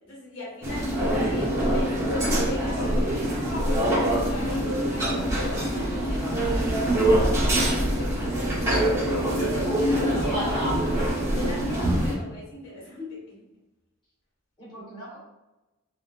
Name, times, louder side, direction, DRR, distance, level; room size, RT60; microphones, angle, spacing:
voice 1, 0.0-3.4 3.6-8.3 9.3-10.5 11.0-13.4, left 1 dB, 70° left, -6 dB, 1.5 m, -39 dB
sound 1, 0.6-12.1, right 1 dB, 15° right, 0.9 m, -24 dB
voice 2, 10.1-10.8 14.6-15.2, equal, 25° left, -8 dB, 1.4 m, -34 dB
3.3 x 2.6 x 2.4 m, 1.0 s
head